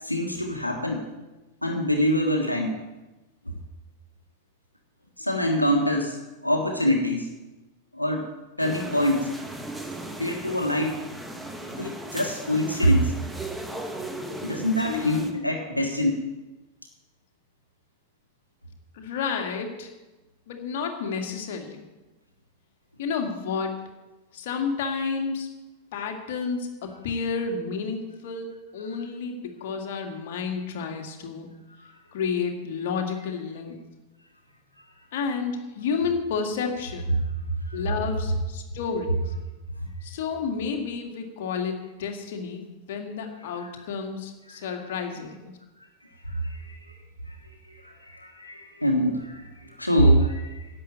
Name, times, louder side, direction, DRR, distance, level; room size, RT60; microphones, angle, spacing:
voice 1, 0.0-1.0 1.6-2.8 3.5-3.6 5.2-7.3 7.9-8.3 8.6-9.3 10.2-11.0 11.7-13.1 14.4-16.1 31.8-31.9 37.7-37.8 43.6-43.7 44.5-44.8 46.2-46.9 47.3-50.7, equal, 85° left, 2 dB, 1.5 m, -25 dB
sound 1, 8.6-15.3, right 1 dB, 5° right, 1.5 m, -37 dB
voice 2, 14.8-15.5 18.9-19.9 20.5-21.9 23.0-23.8 24.3-25.5 25.9-31.5 32.1-33.8 35.1-37.1 37.7-39.3 40.0-45.4, left 5 dB, 55° left, 3 dB, 2.0 m, -31 dB
11.0 x 7.8 x 8.9 m, 1.1 s
figure-of-eight pair, 90°, 0 cm